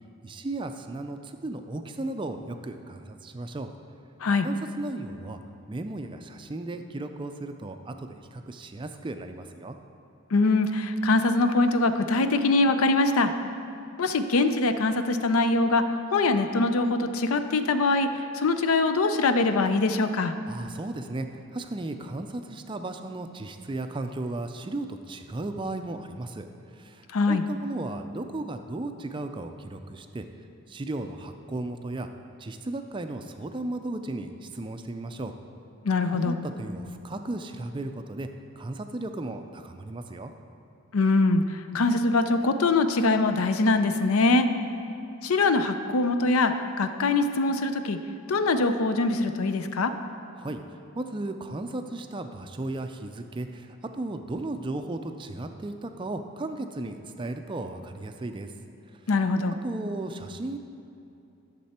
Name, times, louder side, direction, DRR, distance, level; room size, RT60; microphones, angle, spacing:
voice 1, 0.2-3.7 4.4-5.4 5.7-9.8 20.5-30.3 30.7-32.1 32.4-35.3 36.1-38.3 38.6-40.3 50.4-50.6 50.9-58.5 58.9-59.0 59.6-60.6, right 2 dB, 20° right, 7 dB, 0.4 m, -35 dB
voice 2, 10.3-13.3 14.0-20.3 27.1-27.4 35.8-36.4 40.9-44.5 45.2-48.0 48.3-49.9 59.1-59.6, left 3 dB, 75° left, 9 dB, 0.5 m, -23 dB
11.5 x 6.7 x 4.3 m, 2.7 s
head